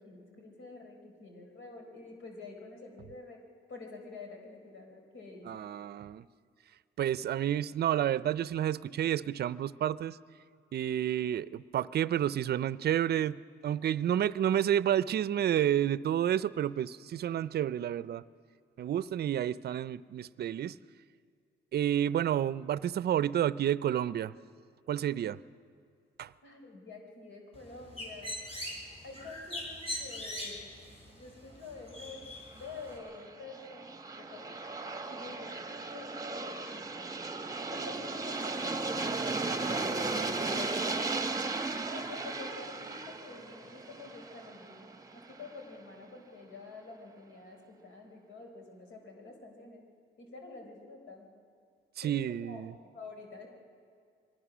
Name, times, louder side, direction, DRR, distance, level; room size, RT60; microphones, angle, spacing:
voice 1, 0.0-3.4 3.7-5.6 26.4-28.3 29.0-30.8 31.1-32.3 32.5-34.6 35.0-35.6 35.8-37.2 37.7-41.4 41.9-49.8 50.2-51.3 52.0-53.5, left 3 dB, 75° left, 2 dB, 4.1 m, -48 dB
voice 2, 5.5-6.2 7.0-10.2 10.7-18.2 18.8-20.8 21.7-24.3 24.9-25.4 26.2-26.3 52.0-52.7, right 10 dB, 55° right, 17 dB, 0.5 m, -30 dB
Bird, 27.5-33.0, left 1 dB, 30° left, 5.1 m, -42 dB
Aircraft, 32.7-45.5, right 3 dB, 15° right, 1.0 m, -36 dB
23.5 x 19.5 x 6.2 m, 2.2 s
cardioid pair, 90°, 20 cm